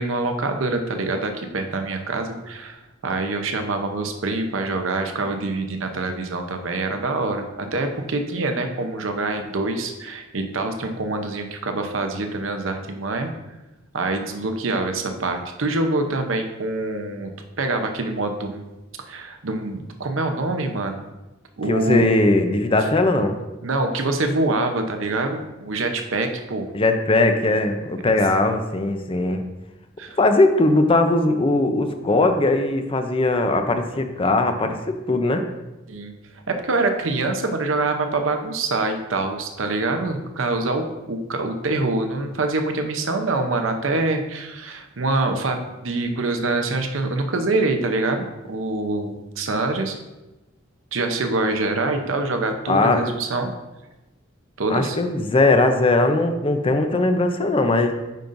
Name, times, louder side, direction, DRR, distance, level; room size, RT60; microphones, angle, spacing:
voice 1, 0.0-13.3 13.9-17.3 17.6-18.7 19.0-21.0 21.6-22.1 23.6-26.7 30.0-30.2 35.9-36.1 36.5-50.0 50.9-53.5 54.6-55.0, right 2 dB, 75° right, 5 dB, 0.7 m, -25 dB
voice 2, 21.7-23.4 26.7-29.4 30.2-35.4 52.7-53.0 54.7-57.9, left 2 dB, 30° left, 6 dB, 0.6 m, -19 dB
9.1 x 5.4 x 2.6 m, 1.0 s
head